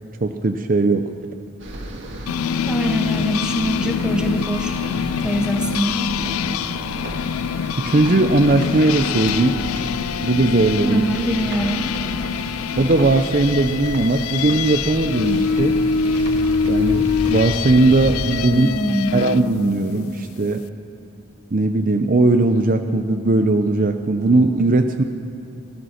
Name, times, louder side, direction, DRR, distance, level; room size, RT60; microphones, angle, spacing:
voice 1, 0.2-1.1 7.8-9.6 10.2-11.0 12.7-15.8 16.6-18.7 19.1-20.6 21.5-25.0, right 2 dB, 40° right, 7 dB, 0.6 m, -18 dB
sound 1, 1.6-18.4, right 1 dB, 60° right, 2.1 m, -33 dB
sound 2, 2.3-19.4, left 6 dB, 90° left, 0.4 m, -24 dB
voice 2, 2.7-4.9 5.2-6.2 10.8-11.9 18.5-19.3, right 1 dB, 5° right, 2 dB, 1.3 m, -24 dB
17.0 x 13.0 x 6.4 m, 2.8 s
head